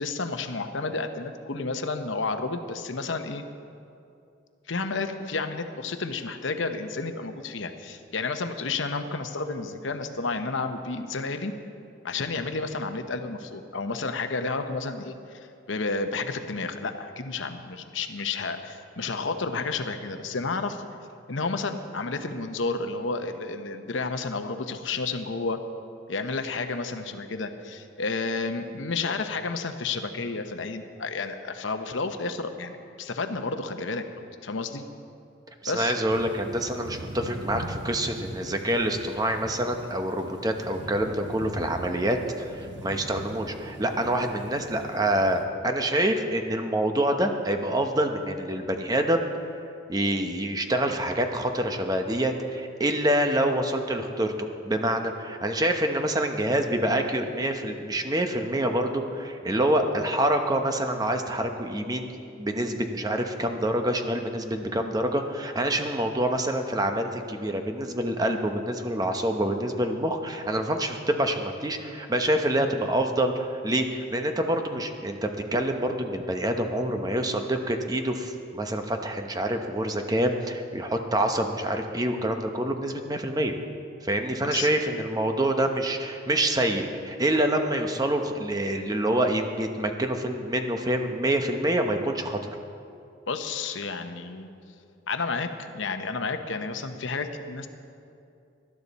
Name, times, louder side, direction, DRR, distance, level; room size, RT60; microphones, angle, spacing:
voice 1, 0.0-3.4 4.7-11.5 12.0-20.8 21.3-25.6 26.1-34.0 34.4-34.8 35.7-35.9 84.4-84.7 93.3-94.5 95.1-95.5 95.7-97.7, left 3 dB, 70° left, 7 dB, 0.8 m, -31 dB
voice 2, 35.6-49.2 49.9-62.1 62.4-83.5 84.0-92.5, right 1 dB, 20° right, 5 dB, 0.8 m, -26 dB
sound 1, 36.1-45.5, right 1 dB, 60° right, 1.0 m, -41 dB
19.0 x 12.0 x 4.1 m, 2.5 s
head